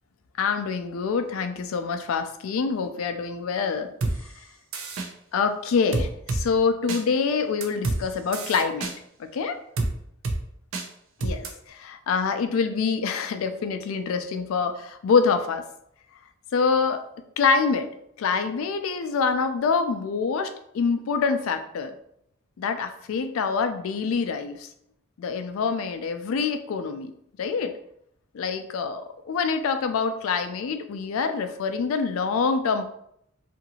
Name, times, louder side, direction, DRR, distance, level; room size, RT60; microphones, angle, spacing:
voice 1, 0.4-3.9 4.2-4.3 5.3-8.9 9.2-9.6 11.2-15.7 16.5-17.0 17.4-17.9 18.2-21.9 22.6-24.7 25.2-27.1 27.4-27.7 28.3-32.9, left 5 dB, 80° left, 8 dB, 0.4 m, -26 dB
sound 1, 4.0-4.1 4.7-5.1 5.9-6.4 6.9-7.0 7.6-8.0 8.3-8.9 9.8-9.9 10.2-10.4 10.7-10.9 11.2-11.5, right 2 dB, 70° right, 0.5 m, -27 dB
2.7 x 2.5 x 2.7 m, 0.73 s
head